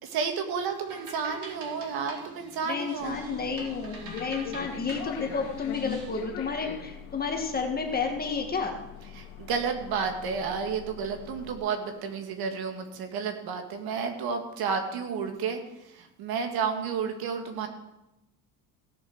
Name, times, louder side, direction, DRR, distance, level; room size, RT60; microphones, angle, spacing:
voice 1, 0.0-3.2 9.1-17.7, right 6 dB, 65° right, 4 dB, 2.2 m, -31 dB
sound 1, 0.5-6.2, right 3 dB, 50° right, 4.0 m, -46 dB
voice 2, 2.7-8.7, left 5 dB, 25° left, 3 dB, 1.9 m, -31 dB
sound 2, 3.0-11.6, left 9 dB, 90° left, 1.9 m, -43 dB
17.0 x 6.9 x 6.3 m, 0.94 s
cardioid pair, 125°, 39 cm